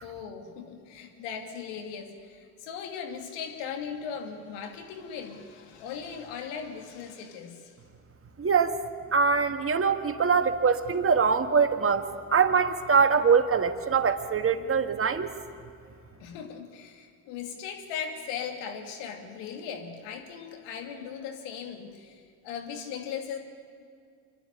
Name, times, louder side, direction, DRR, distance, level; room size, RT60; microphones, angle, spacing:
voice 1, 0.0-7.7 16.2-23.4, left 7 dB, 70° left, 4 dB, 2.8 m, -38 dB
voice 2, 8.4-8.8 9.1-15.3, right 5 dB, 30° right, 7 dB, 1.7 m, -23 dB
25.5 x 12.0 x 9.9 m, 2.2 s
hypercardioid pair, 70°, 44 cm